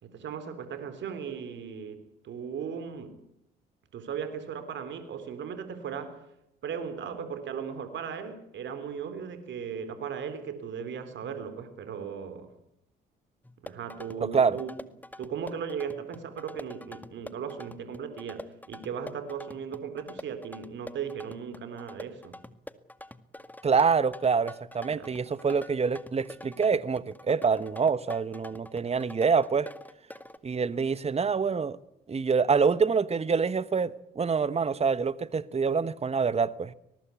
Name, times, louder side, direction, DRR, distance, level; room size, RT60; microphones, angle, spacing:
voice 1, 0.0-3.2 3.9-6.3 6.6-12.5 13.6-14.7 15.2-22.4 24.9-25.1, right 7 dB, 60° right, 3.6 m, -37 dB
sound 1, 13.4-30.4, left 1 dB, 10° left, 1.9 m, -46 dB
voice 2, 14.2-14.6 23.6-29.7 30.4-31.8 32.1-36.7, right 5 dB, 30° right, 1.2 m, -26 dB
23.0 x 20.0 x 8.4 m
hypercardioid pair, 60°, 21 cm